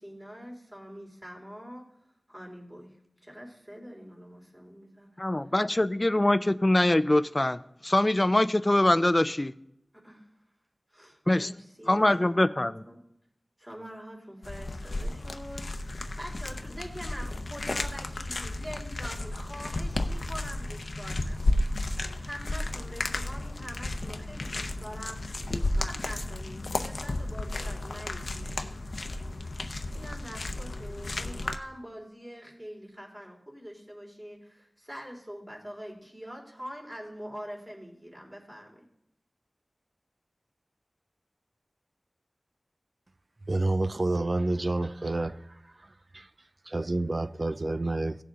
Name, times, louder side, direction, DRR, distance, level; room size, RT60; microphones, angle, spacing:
voice 1, 0.0-1.8 2.3-2.9 3.2-5.1 10.0-10.3 10.9-13.0 13.6-21.7 22.2-28.8 29.9-38.8, equal, 20° right, 3.4 m, -44 dB
voice 2, 5.2-9.5 11.3-11.5 11.9-12.7, left 1 dB, 30° left, 0.5 m, -23 dB
sound 1, 14.4-31.5, left 2 dB, 80° left, 0.7 m, -33 dB
voice 3, 43.5-45.4 46.1-46.2 46.7-48.2, right 2 dB, 55° right, 0.5 m, -28 dB
16.5 x 6.8 x 3.8 m
wide cardioid pair, 45°, 0 cm